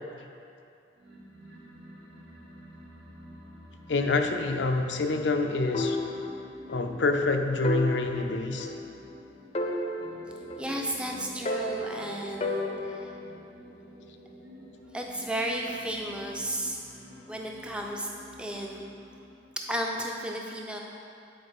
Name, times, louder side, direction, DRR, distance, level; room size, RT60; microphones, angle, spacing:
sound 1, 1.0-19.6, equal, 75° right, 1.6 m, -49 dB
voice 1, 3.9-6.0 6.7-8.7, left 3 dB, 85° left, 5 dB, 0.6 m, -27 dB
sound 2, 5.7-6.9 7.2-7.3 7.6-9.2 9.6-11.0 11.5-13.3, left 1 dB, 35° left, 0.6 m, -33 dB
voice 2, 10.6-13.1 14.9-16.8 17.3-18.1 18.4-18.8 19.6-20.8, right 1 dB, 5° right, 0 dB, 0.6 m, -33 dB
9.2 x 4.3 x 4.8 m, 2.5 s
head